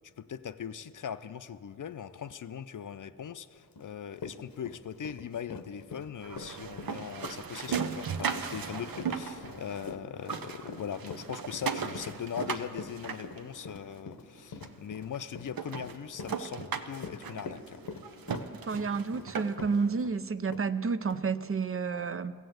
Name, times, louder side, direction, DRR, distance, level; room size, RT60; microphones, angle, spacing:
voice 1, 0.2-17.8, left 8 dB, 60° left, 12 dB, 0.5 m, -40 dB
Run, 3.8-3.9 4.2-20.1 20.5-20.7 21.1-21.2, left 4 dB, 80° left, 0.9 m, -44 dB
sound 1, 6.2-9.9 10.2-13.9 14.6-14.7 15.1-15.2 15.5-19.8, right 6 dB, 80° right, 0.7 m, -37 dB
voice 2, 18.7-22.3, right 5 dB, 40° right, 13 dB, 0.5 m, -30 dB
15.0 x 7.8 x 7.8 m, 2.2 s
wide cardioid pair, 60°, 35 cm